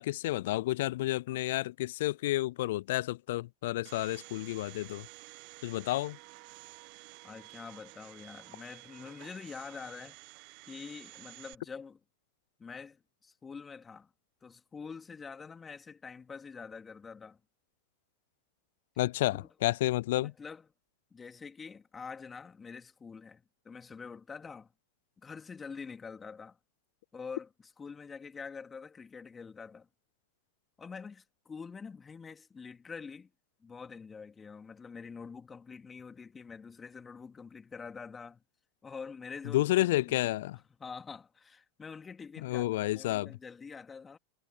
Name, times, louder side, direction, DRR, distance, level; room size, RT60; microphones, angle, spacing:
voice 1, 0.0-5.1 5.6-6.2 19.0-20.3 39.5-40.6 42.4-43.3, left 16 dB, 65° left, 0.4 m, -30 dB
Domestic sounds home sounds, 3.8-11.5, right 27 dB, 50° right, 1.5 m, -52 dB
voice 2, 7.2-10.2 10.7-12.0 12.6-14.1 14.4-17.4 19.4-19.5 20.2-20.7 21.1-24.7 25.2-26.6 27.1-29.9 30.8-33.3 33.6-38.4 38.8-40.2 40.8-44.2, left 5 dB, 20° left, 3.2 m, -46 dB
hypercardioid pair, 95°, 0 cm